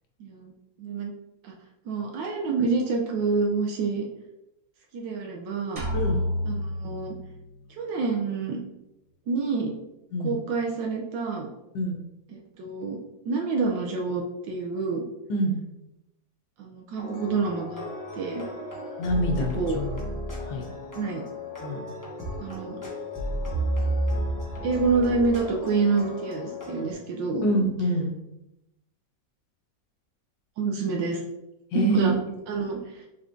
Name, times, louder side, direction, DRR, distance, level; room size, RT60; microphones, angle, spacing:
voice 1, 0.2-0.5 0.8-1.1 1.4-1.5 1.9-4.1 4.9-5.8 6.4-7.2 7.8-8.6 9.3-9.7 10.2-11.5 12.6-13.0 13.3-15.0 16.6-17.8 18.1-18.4 19.4-19.8 21.0-21.2 22.4-22.8 24.6-27.5 30.6-31.2 31.7-32.2 32.5-33.0, right 4 dB, 80° right, 0 dB, 1.3 m, -27 dB
sound 1, 5.8-7.6, left 1 dB, 40° right, 0.5 m, -29 dB
sound 2, 17.0-26.9, right 1 dB, 20° left, 0.5 m, -33 dB
voice 2, 19.0-20.0 20.4-20.6 21.6-21.8 27.4-28.1 31.7-32.1, right 1 dB, 75° left, 2 dB, 1.4 m, -25 dB
5.6 x 3.6 x 2.5 m, 0.92 s
omnidirectional pair, 2.0 m